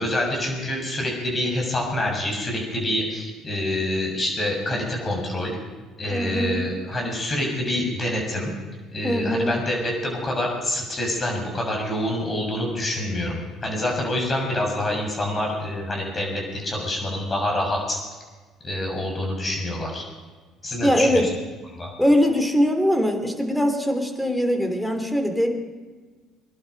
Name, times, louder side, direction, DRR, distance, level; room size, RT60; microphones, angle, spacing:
voice 1, 0.0-5.6 6.0-8.5 8.9-18.0 18.6-20.0 20.6-21.3 21.7-21.9, left 1 dB, 35° left, 0 dB, 6.9 m, -26 dB
voice 2, 6.1-6.6 9.0-9.5 20.8-21.2 22.0-25.5, equal, 5° left, 5 dB, 3.3 m, -21 dB
21.5 x 11.5 x 5.4 m, 1.4 s
hypercardioid pair, 65°, 0 cm